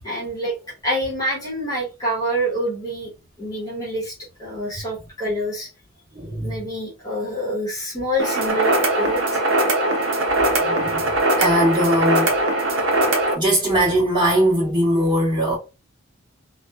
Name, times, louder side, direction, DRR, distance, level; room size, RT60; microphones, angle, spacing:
voice 1, 0.0-0.6 0.8-3.1 3.4-5.7 6.4-9.4, equal, 20° left, 0.9 m, -26 dB
voice 2, 6.1-6.6 10.6-11.0 11.4-12.4 13.3-15.6, equal, 25° right, 1.4 m, -20 dB
sound 1, 8.2-13.3, right 2 dB, 65° right, 0.6 m, -20 dB
3.0 x 2.1 x 2.2 m
head